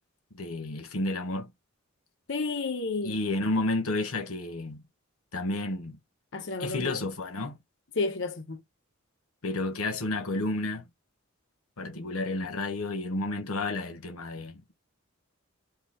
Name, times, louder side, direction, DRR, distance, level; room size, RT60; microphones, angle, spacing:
voice 1, 0.3-1.5 3.0-4.8 5.3-6.0 6.6-7.6 9.4-10.8 11.8-14.7, left 2 dB, 90° left, 1.2 m, -31 dB
voice 2, 2.3-3.2 6.3-7.0 8.0-8.6, left 3 dB, 60° left, 0.9 m, -31 dB
4.0 x 2.7 x 4.2 m
head